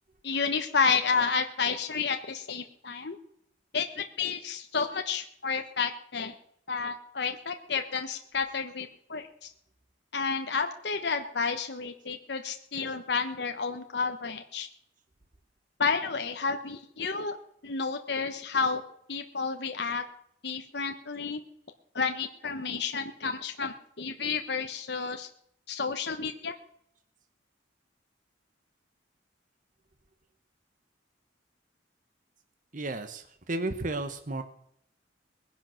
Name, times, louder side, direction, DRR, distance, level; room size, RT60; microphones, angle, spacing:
voice 1, 0.2-3.2 3.7-6.3 6.7-9.5 10.1-14.7 15.8-17.4 17.6-18.8 19.1-20.0 20.4-21.4 21.9-25.3 25.7-26.5, left 5 dB, 60° left, 6 dB, 1.1 m, -31 dB
voice 2, 32.7-34.4, right 2 dB, 45° right, 8 dB, 1.2 m, -33 dB
20.0 x 11.0 x 6.4 m, 0.73 s
head